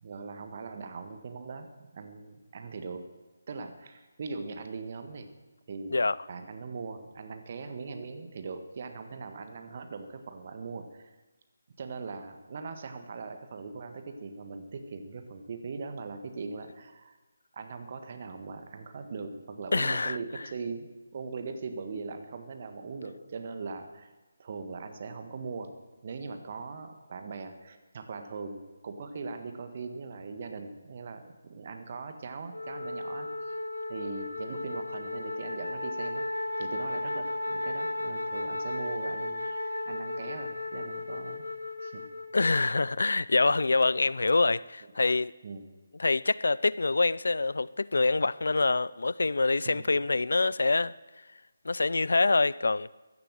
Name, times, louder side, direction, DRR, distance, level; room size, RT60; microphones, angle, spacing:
voice 1, 0.0-3.0 3.5-5.3 5.7-11.1 11.8-17.2 17.5-24.1 24.4-25.7 26.0-33.5 33.9-36.3 36.6-41.4 41.8-42.0 45.4-45.6 49.7-49.9, right 4 dB, 40° right, 1.6 m, -40 dB
voice 2, 19.7-20.2 42.3-45.3 46.0-50.9 51.6-52.9, left 3 dB, 65° left, 0.4 m, -25 dB
Wind instrument woodwind instrument, 32.5-42.9, left 2 dB, 85° left, 1.8 m, -35 dB
15.0 x 11.5 x 7.6 m
figure-of-eight pair, 150°, 0 cm